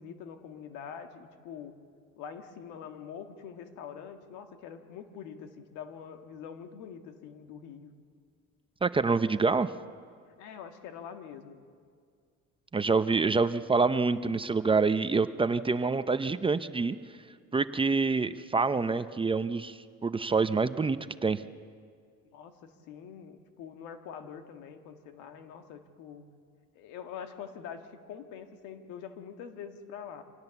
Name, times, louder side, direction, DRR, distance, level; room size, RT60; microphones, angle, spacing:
voice 1, 0.0-1.8 2.2-7.9 10.4-11.6 22.3-26.3 26.7-30.2, left 7 dB, 85° left, 6 dB, 1.7 m, -44 dB
voice 2, 8.8-9.7 12.7-17.0 17.5-21.4, right 4 dB, 20° right, 12 dB, 0.6 m, -26 dB
25.0 x 17.5 x 7.1 m, 2.1 s
cardioid pair, 105°, 30 cm